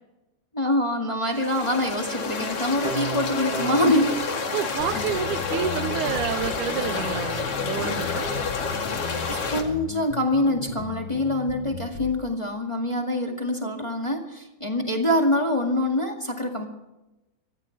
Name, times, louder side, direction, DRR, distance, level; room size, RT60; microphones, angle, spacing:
voice 1, 0.5-4.2 4.8-5.0 9.3-16.7, left 1 dB, 15° left, 2 dB, 1.5 m, -25 dB
sound 1, 1.3-9.6, left 4 dB, 50° left, 3.0 m, -29 dB
sound 2, 2.8-5.8, right 6 dB, 65° right, 1.8 m, -37 dB
voice 2, 4.5-8.3, right 11 dB, 85° right, 14 dB, 2.2 m, -29 dB
sound 3, 4.8-12.2, left 8 dB, 80° left, 1.1 m, -37 dB
24.5 x 15.5 x 3.4 m, 0.97 s
omnidirectional pair, 3.4 m